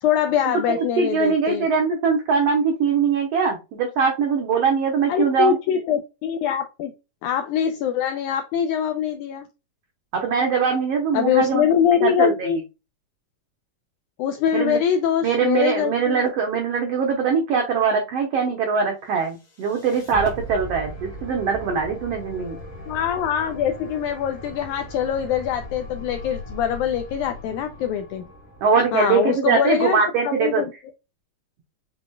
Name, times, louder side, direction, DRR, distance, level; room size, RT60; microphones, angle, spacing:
voice 1, 0.0-1.7 5.1-6.9 7.2-9.5 11.1-12.6 14.2-16.2 22.9-28.2 28.9-30.7, left 9 dB, 85° left, 7 dB, 1.8 m, -23 dB
voice 2, 0.7-5.6 10.1-11.7 12.0-12.5 14.5-14.8 15.2-22.6 28.6-30.6, right 5 dB, 85° right, 3 dB, 1.4 m, -22 dB
sound 1, 19.2-29.4, left 1 dB, 40° left, 1.7 m, -38 dB
5.9 x 3.8 x 2.2 m, 0.27 s
omnidirectional pair, 4.0 m